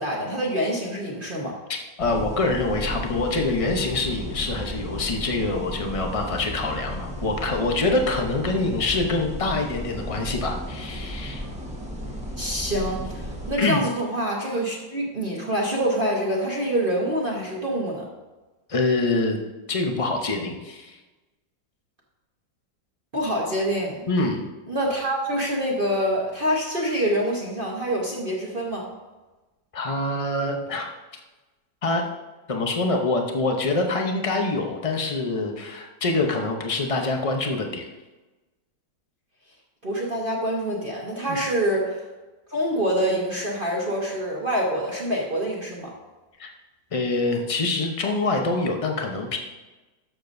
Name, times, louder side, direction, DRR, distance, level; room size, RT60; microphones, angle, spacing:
voice 1, 0.0-1.6 12.4-18.1 23.1-24.1 24.7-28.9 39.8-42.0 42.5-45.9, equal, 35° right, -3 dB, 1.2 m, -26 dB
voice 2, 2.0-11.4 13.6-13.8 18.7-19.4 19.7-21.0 24.1-24.4 29.7-30.9 31.8-32.0 32.5-37.9 41.3-41.4 46.4-46.5 46.9-49.4, left 2 dB, 50° left, 3 dB, 0.4 m, -25 dB
sound 1, 2.0-13.5, equal, 5° right, 1.0 m, -34 dB
12.5 x 6.9 x 2.6 m, 1.2 s
omnidirectional pair, 2.0 m